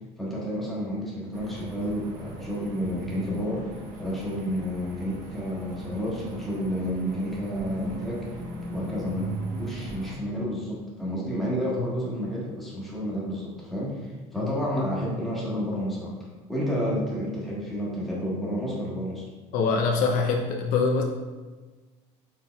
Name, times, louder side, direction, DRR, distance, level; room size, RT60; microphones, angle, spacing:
voice 1, 0.2-3.6 4.0-8.3 8.7-9.3 9.6-16.1 16.5-19.2, equal, ahead, -6 dB, 1.3 m, -30 dB
sound 1, 1.3-10.2, right 2 dB, 60° right, 0.8 m, -38 dB
voice 2, 19.5-21.0, left 4 dB, 60° left, 2 dB, 0.5 m, -24 dB
4.3 x 3.4 x 2.3 m, 1.3 s
supercardioid pair, 105°, 15 cm